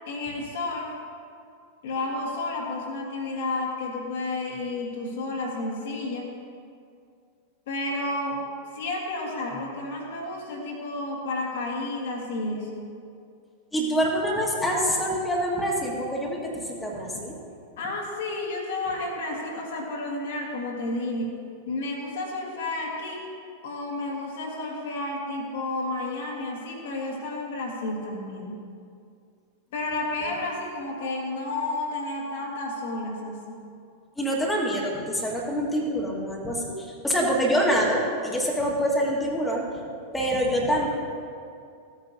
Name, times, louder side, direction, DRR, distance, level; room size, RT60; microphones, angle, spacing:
voice 1, 0.1-0.9 1.8-6.3 7.7-8.4 8.7-12.8 17.8-21.4 21.7-23.3 23.6-28.6 29.7-33.6, left 2 dB, 55° left, -1 dB, 1.7 m, -31 dB
voice 2, 13.7-17.4 34.2-39.6 40.1-40.9, equal, 10° left, -2 dB, 1.6 m, -25 dB
15.5 x 8.8 x 2.8 m, 2.4 s
figure-of-eight pair, 90°, 0 cm